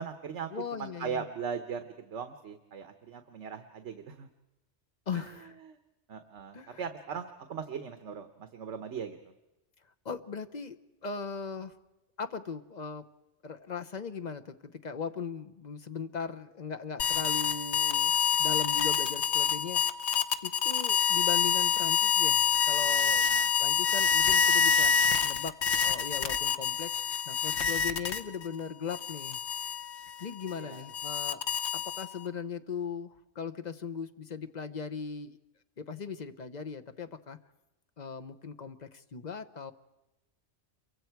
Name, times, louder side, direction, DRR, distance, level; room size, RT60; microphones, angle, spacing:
voice 1, 0.0-4.3 5.1-5.8 6.1-9.3 23.2-23.5 30.6-30.9, right 6 dB, 75° right, 8 dB, 1.3 m, -39 dB
voice 2, 0.5-1.2 5.1-5.5 6.5-6.8 10.0-11.7 12.2-13.0 13.4-18.1 18.4-19.8 20.4-23.2 23.6-24.9 25.2-26.9 27.3-29.4 30.2-31.4 31.7-35.4 35.8-37.4 38.0-39.7, left 6 dB, 40° left, 9 dB, 1.0 m, -38 dB
sound 1, 17.0-28.5 28.9-32.3, left 7 dB, 70° left, 1.2 m, -27 dB
28.0 x 24.0 x 4.6 m, 1.0 s
omnidirectional pair, 1.2 m